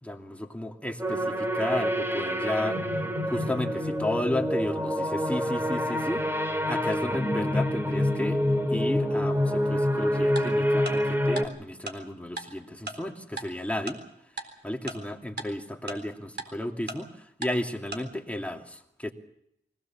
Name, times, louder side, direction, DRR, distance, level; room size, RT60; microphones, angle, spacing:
voice 1, 0.0-2.8 3.3-6.2 6.7-8.4 8.7-14.0 14.6-19.1, left 1 dB, 5° left, 2 dB, 2.5 m, -33 dB
sound 1, 1.0-11.5, equal, 10° right, 2.2 m, -27 dB
Tick-tock, 10.4-10.5 10.9-11.0 11.4-11.5 11.9-12.0 12.4-12.5 12.9-13.0 13.4-13.5 13.9-14.0 14.4-14.5 14.9-15.0 15.4-15.5 15.9-16.0 16.4-16.5 16.9-17.0 17.4-17.5 17.9-18.0, right 2 dB, 70° right, 4.0 m, -34 dB
24.5 x 18.0 x 7.2 m, 0.79 s
wide cardioid pair, 70°, 19 cm